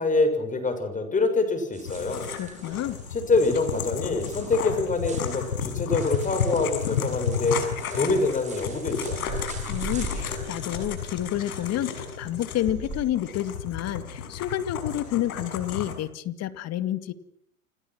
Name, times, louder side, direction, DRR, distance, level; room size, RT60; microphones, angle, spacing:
voice 1, 0.0-2.3 3.1-7.6 7.9-9.3, left 3 dB, 20° left, 8 dB, 6.9 m, -25 dB
sound 1, 1.7-13.0, right 3 dB, 15° right, 7.4 m, -42 dB
sound 2, 1.9-16.0, left 7 dB, 75° left, 6.4 m, -32 dB
voice 2, 2.3-3.0 9.7-17.1, left 12 dB, 35° left, 12 dB, 2.1 m, -29 dB
30.0 x 25.5 x 6.2 m, 0.70 s
hypercardioid pair, 110°, 43 cm